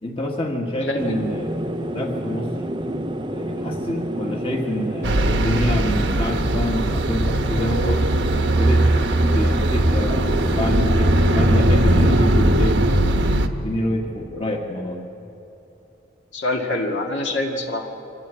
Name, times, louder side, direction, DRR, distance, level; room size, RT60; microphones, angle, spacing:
voice 1, 0.0-2.5 3.3-8.1 8.5-8.9 9.3-15.0, left 1 dB, 30° left, 1 dB, 1.7 m, -27 dB
voice 2, 0.9-1.2 16.3-17.9, left 2 dB, 65° left, 1 dB, 2.1 m, -25 dB
sound 1, 1.0-10.8, right 1 dB, 25° right, 0.6 m, -29 dB
sound 2, 5.0-13.5, right 1 dB, 65° right, 1.2 m, -19 dB
25.0 x 13.5 x 8.4 m, 2.9 s
head